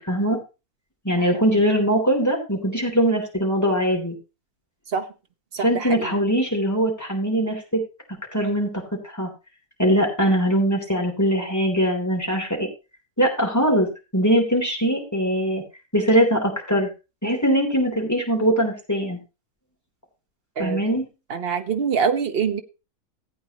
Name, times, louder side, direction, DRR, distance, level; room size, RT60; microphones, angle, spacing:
voice 1, 0.1-0.4 1.0-4.1 5.6-7.8 8.3-8.7 9.0-9.3 9.8-12.7 13.2-13.9 14.1-15.6 15.9-16.9 17.2-19.2 20.6-21.0, equal, 10° left, -1 dB, 3.3 m, -21 dB
voice 2, 5.5-6.1 20.6-20.8 21.3-22.6, right 6 dB, 45° right, 7 dB, 1.1 m, -25 dB
15.5 x 8.7 x 3.0 m, 0.30 s
omnidirectional pair, 1.7 m